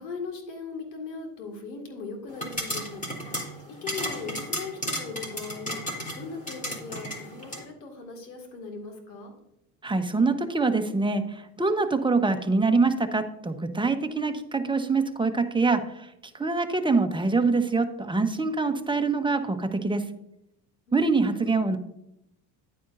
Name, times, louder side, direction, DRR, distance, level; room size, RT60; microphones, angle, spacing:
voice 1, 0.0-3.0 3.8-9.3 20.9-21.5, left 4 dB, 90° left, 3 dB, 2.2 m, -39 dB
sound 1, 2.3-7.6, equal, 15° left, 3.7 m, -34 dB
voice 2, 9.8-20.0 20.9-21.8, right 3 dB, 10° right, 6 dB, 1.1 m, -25 dB
10.5 x 9.2 x 2.6 m, 0.82 s
hypercardioid pair, 75°, 49 cm